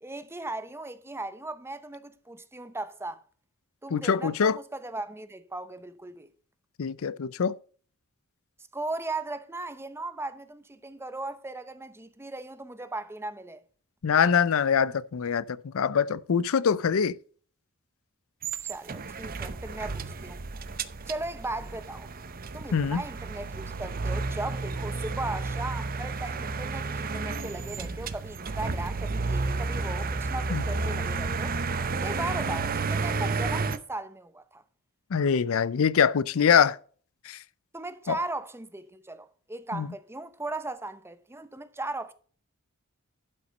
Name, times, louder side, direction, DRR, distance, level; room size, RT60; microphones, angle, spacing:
voice 1, 0.0-3.2 3.8-6.3 8.7-13.6 18.6-20.4 21.1-22.1 22.5-31.6 32.0-34.6 37.7-42.1, right 2 dB, 10° right, 0.8 m, -37 dB
voice 2, 3.9-4.6 6.8-7.5 14.0-17.1 22.7-23.0 30.5-30.6 35.1-36.8 37.3-37.4 39.7-39.9, left 7 dB, 65° left, 0.5 m, -24 dB
sound 1, 18.4-33.8, right 3 dB, 40° right, 0.7 m, -32 dB
12.0 x 5.9 x 5.2 m
head